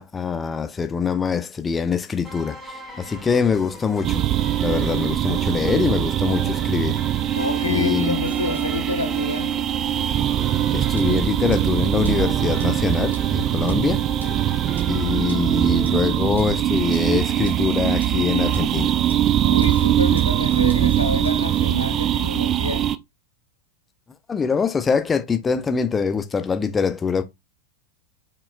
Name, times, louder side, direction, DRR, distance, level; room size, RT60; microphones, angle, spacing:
voice 1, 0.0-4.2 4.6-7.0 7.6-8.2 10.7-14.0 14.9-18.9 24.3-27.2, left 6 dB, 15° left, 0.5 m, -24 dB
sound 1, 2.2-16.0, left 1 dB, ahead, 2.1 m, -39 dB
sound 2, 4.0-22.9, right 12 dB, 30° right, 0.4 m, -22 dB
voice 2, 7.3-9.6 19.4-22.8, left 3 dB, 80° left, 0.9 m, -29 dB
sound 3, 10.5-21.4, right 2 dB, 75° right, 1.5 m, -49 dB
5.4 x 4.2 x 2.4 m
figure-of-eight pair, 90°, 0 cm